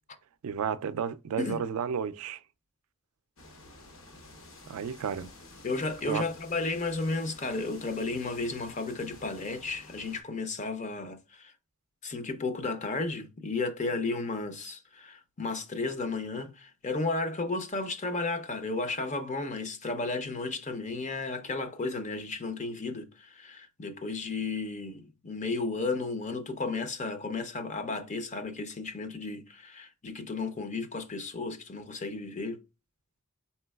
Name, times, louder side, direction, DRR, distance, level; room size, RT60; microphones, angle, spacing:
voice 1, 0.4-2.4 4.7-5.3 6.1-6.2, right 7 dB, 75° right, 0.3 m, -32 dB
sound 1, 3.4-10.2, left 2 dB, 65° left, 0.8 m, -51 dB
voice 2, 5.6-11.5 12.0-32.6, left 3 dB, 35° left, 0.5 m, -33 dB
4.3 x 3.8 x 2.3 m
head